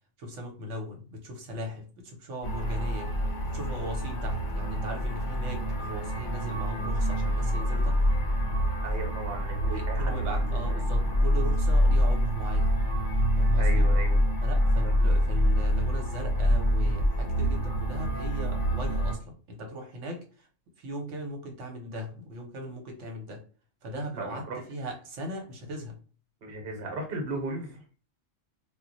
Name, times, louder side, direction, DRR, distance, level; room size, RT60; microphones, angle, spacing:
voice 1, 0.2-3.1 3.4-8.0 9.6-12.7 13.4-13.9 14.4-20.5 20.8-23.4 23.8-26.0, equal, 75° right, 3 dB, 1.1 m, -39 dB
sound 1, 2.4-19.1, equal, 50° left, 0.6 m, -26 dB
voice 2, 8.8-10.8 13.6-14.2 14.8-15.1 24.2-24.6 26.4-27.8, right 2 dB, 55° right, 3 dB, 1.0 m, -37 dB
2.2 x 2.1 x 3.8 m, 0.38 s
omnidirectional pair, 1.3 m